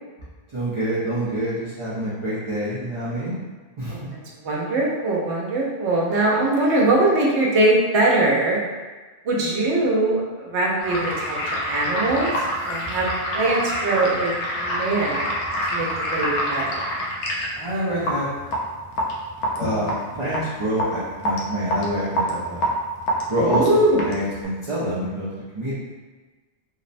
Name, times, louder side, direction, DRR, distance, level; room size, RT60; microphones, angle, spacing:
voice 1, 0.5-3.3 3.8-4.0 17.6-18.3 19.5-22.6 23.3-25.3 25.5-25.7, right 1 dB, 45° right, -10 dB, 0.4 m, -26 dB
voice 2, 4.4-8.6 9.2-11.4 11.7-12.3 12.7-13.1 13.3-15.2 15.7-16.8 23.4-24.1, right 2 dB, 80° right, -3 dB, 0.9 m, -21 dB
sound 1, 10.8-24.5, equal, 85° left, 0.9 m, -27 dB
2.8 x 2.0 x 2.5 m, 1.3 s
omnidirectional pair, 1.2 m